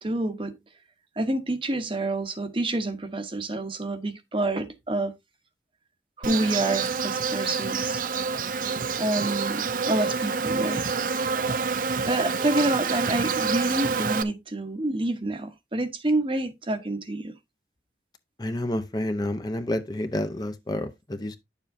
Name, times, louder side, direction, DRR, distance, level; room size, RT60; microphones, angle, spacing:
voice 1, 0.0-0.6 1.2-5.1 6.2-8.0 9.0-10.8 12.0-17.4, right 2 dB, 30° right, 1.0 m, -28 dB
Insect, 6.2-14.2, right 5 dB, 50° right, 0.6 m, -27 dB
voice 2, 18.4-21.4, left 1 dB, 20° left, 0.7 m, -29 dB
10.0 x 7.1 x 2.7 m
head